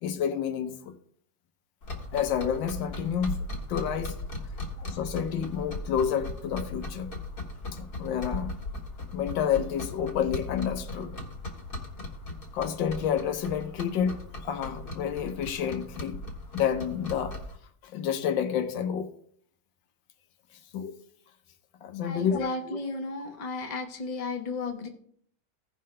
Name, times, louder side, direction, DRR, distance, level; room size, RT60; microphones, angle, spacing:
voice 1, 0.0-0.9 2.1-3.4 3.7-4.2 4.8-7.1 7.7-8.5 9.1-11.1 12.5-16.2 16.5-17.4 17.8-19.1 20.7-21.0 21.8-22.5, left 8 dB, 90° left, 1.5 m, -29 dB
sound 1, 1.8-17.6, left 2 dB, 60° left, 2.0 m, -38 dB
voice 2, 22.0-24.9, left 3 dB, 30° left, 1.0 m, -34 dB
16.0 x 5.6 x 3.2 m
omnidirectional pair, 2.0 m